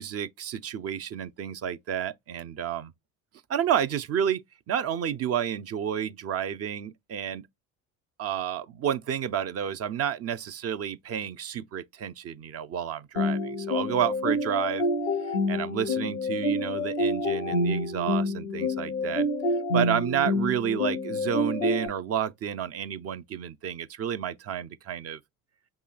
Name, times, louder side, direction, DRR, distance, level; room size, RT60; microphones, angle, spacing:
voice 1, 0.0-2.9 3.5-7.5 8.2-14.9 15.3-19.3 19.7-25.2, right 9 dB, 35° right, 0.6 m, -30 dB
sound 1, 13.2-21.9, left 1 dB, 90° left, 0.9 m, -27 dB
5.5 x 2.8 x 2.3 m
hypercardioid pair, 60°, 41 cm